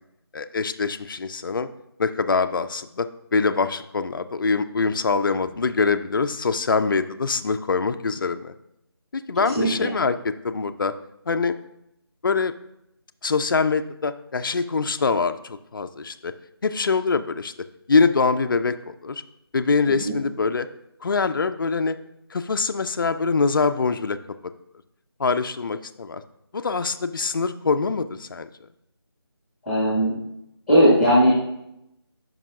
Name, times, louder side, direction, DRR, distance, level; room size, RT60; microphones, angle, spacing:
voice 1, 0.3-1.7 2.0-8.5 9.1-10.9 11.3-11.5 12.2-12.5 13.2-16.3 16.6-17.5 17.9-19.2 19.5-20.7 21.0-22.0 22.3-24.2 25.2-26.2 26.5-28.5, left 4 dB, 55° left, 9 dB, 0.4 m, -24 dB
voice 2, 29.6-30.1 30.7-31.3, equal, ahead, -9 dB, 1.5 m, -17 dB
12.5 x 5.4 x 2.3 m, 0.83 s
figure-of-eight pair, 165°, 13 cm